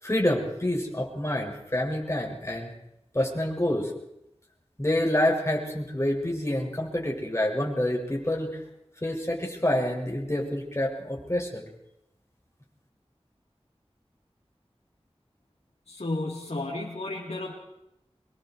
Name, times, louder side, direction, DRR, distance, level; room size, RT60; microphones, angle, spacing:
voice 1, 0.0-2.7 3.1-3.9 4.8-8.6 9.0-11.6, left 1 dB, 25° left, -1 dB, 6.9 m, -27 dB
voice 2, 15.9-17.5, left 2 dB, 85° left, -4 dB, 4.1 m, -32 dB
25.5 x 22.5 x 4.8 m, 0.83 s
wide cardioid pair, 50°, 11 cm